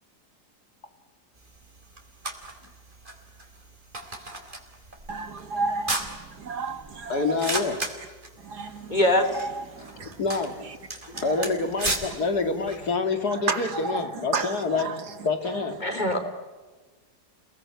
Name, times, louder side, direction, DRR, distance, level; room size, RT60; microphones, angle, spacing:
sound 1, 1.4-12.9, right 2 dB, 30° right, 4.0 m, -37 dB
voice 1, 5.1-7.4 8.4-9.0 9.3-10.1 11.1-11.5 13.3-15.0, right 4 dB, 75° right, 2.4 m, -32 dB
voice 2, 7.1-7.8 10.2-10.6 11.2-14.9 15.2-15.8, left 4 dB, 70° left, 2.9 m, -27 dB
voice 3, 8.9-9.5 11.1-11.2 15.8-16.2, left 1 dB, 25° left, 3.8 m, -23 dB
30.0 x 19.0 x 9.5 m
omnidirectional pair, 1.7 m